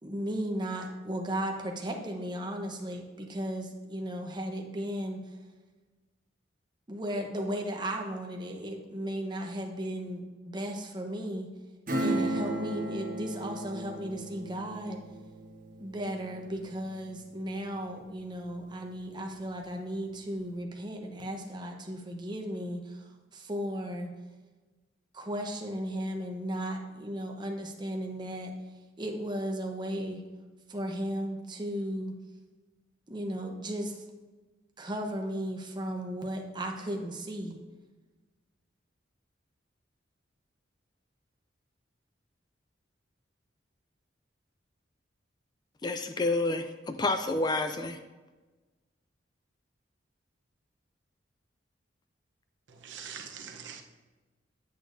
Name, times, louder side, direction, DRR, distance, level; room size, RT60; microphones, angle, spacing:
voice 1, 0.0-5.2 6.9-11.5 12.0-15.0 15.8-24.1 25.1-28.5 29.0-30.2 30.7-32.2 33.1-34.0 34.8-37.6, equal, 25° right, 2 dB, 0.8 m, -35 dB
Acoustic guitar / Strum, 11.9-18.1 18.4-18.5, right 1 dB, 45° right, 1.1 m, -35 dB
voice 2, 45.8-48.0, left 2 dB, 20° left, 8 dB, 0.3 m, -29 dB
voice 3, 52.8-53.8, right 7 dB, 75° right, 3 dB, 0.8 m, -43 dB
8.4 x 8.2 x 2.6 m, 1.2 s
head